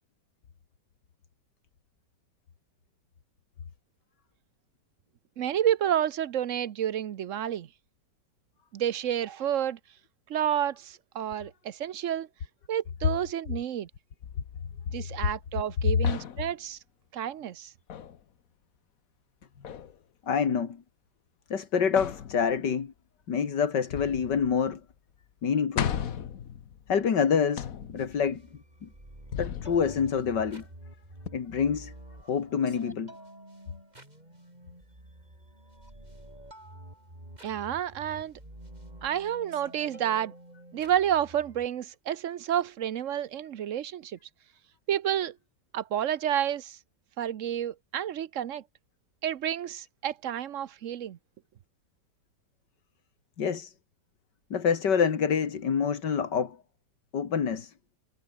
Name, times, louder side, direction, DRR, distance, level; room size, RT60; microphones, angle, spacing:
voice 1, 5.4-7.7 8.7-9.8 10.3-12.3 12.7-13.9 14.9-16.8 17.1-17.7 37.4-38.3 39.0-40.3 40.7-44.2 44.9-45.4 45.7-46.8 47.2-48.6 49.2-51.2, right 10 dB, 55° right, 1.0 m, -30 dB
sound 1, 14.2-15.7 16.0-16.6 17.9-18.2 19.6-20.0 22.0-22.8 23.9-24.9 25.2-25.3 25.8-27.1 27.6-28.4 29.3-30.7 31.3-31.4, left 8 dB, 55° left, 1.5 m, -37 dB
voice 2, 20.3-20.8 21.5-22.9 23.3-24.8 25.4-25.9 26.9-28.4 28.8-28.9 29.4-30.6 31.3-31.9 32.3-33.1 53.4-53.7 54.5-56.6 57.1-57.7, left 6 dB, 75° left, 2.5 m, -27 dB
sound 2, 27.9-41.6, right 1 dB, 20° right, 6.4 m, -49 dB
omnidirectional pair, 1.9 m